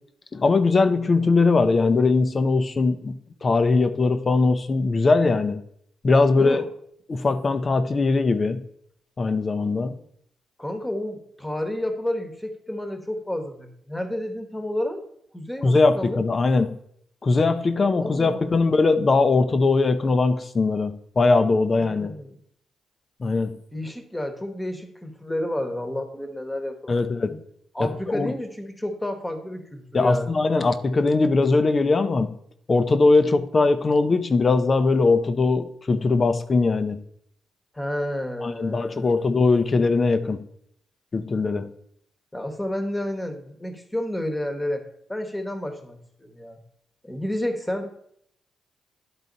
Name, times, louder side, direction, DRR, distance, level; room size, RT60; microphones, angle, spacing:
voice 1, 0.3-5.6 6.0-6.6 7.1-8.6 9.2-9.9 15.6-16.8 17.2-22.1 23.2-23.6 26.9-27.3 27.8-28.3 29.9-32.3 32.7-37.0 38.4-40.4 41.1-41.7, left 3 dB, 35° left, 11 dB, 0.6 m, -20 dB
voice 2, 6.4-6.7 10.6-15.0 15.3-16.2 18.0-18.6 21.8-22.4 23.7-27.0 27.7-30.4 37.7-39.2 42.3-46.6 47.0-47.9, left 1 dB, 10° left, 5 dB, 1.2 m, -30 dB
10.5 x 4.0 x 3.9 m, 0.70 s
cardioid pair, 85°, 0 cm